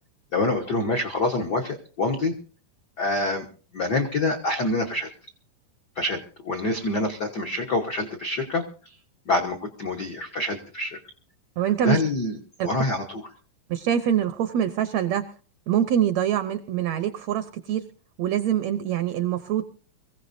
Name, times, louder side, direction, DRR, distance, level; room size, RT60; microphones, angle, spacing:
voice 1, 0.3-2.3 3.0-3.5 3.7-5.1 5.9-8.7 9.3-11.0 11.8-12.4 12.6-13.2, left 2 dB, 70° left, 2 dB, 0.9 m, -26 dB
voice 2, 11.6-12.0 12.6-12.7 13.7-15.2 15.7-17.9 18.2-19.6, right 10 dB, 75° right, 10 dB, 1.6 m, -24 dB
24.0 x 15.5 x 2.7 m, 0.38 s
omnidirectional pair, 3.9 m